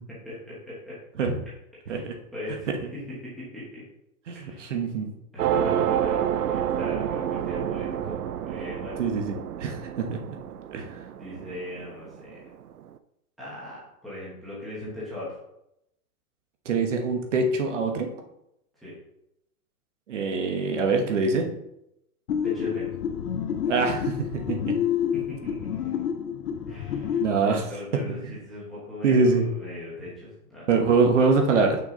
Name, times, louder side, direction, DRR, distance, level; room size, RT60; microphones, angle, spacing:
voice 1, 0.1-1.0 1.8-3.8 4.3-4.7 5.3-9.0 11.2-12.4 13.4-15.3 18.8-19.0 22.4-22.9 23.7-23.8 25.1-25.7 26.7-30.7, left 1 dB, ahead, -10 dB, 1.0 m, -39 dB
voice 2, 4.3-5.1 9.0-9.3 9.6-10.4 10.7-10.8 16.6-18.1 20.1-21.5 23.7-24.8 27.2-27.6 28.2-28.4 29.0-29.5 30.7-31.8, right 4 dB, 50° right, 4 dB, 1.4 m, -24 dB
sound 1, 5.4-12.2, right 10 dB, 75° right, 0.7 m, -28 dB
sound 2, 22.3-27.3, left 8 dB, 85° left, 1.0 m, -28 dB
7.4 x 6.0 x 3.9 m, 0.82 s
hypercardioid pair, 180°, 45 cm